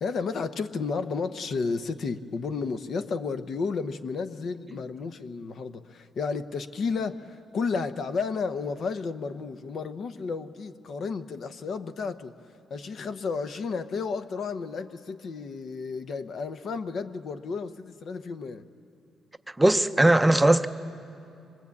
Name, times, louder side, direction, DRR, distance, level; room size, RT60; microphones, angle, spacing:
voice 1, 0.0-12.3 12.7-18.6, left 4 dB, 55° left, 0.9 m, -32 dB
voice 2, 19.6-20.7, right 1 dB, 10° right, 0.6 m, -19 dB
25.0 x 22.0 x 8.5 m
cardioid pair, 115°, 0 cm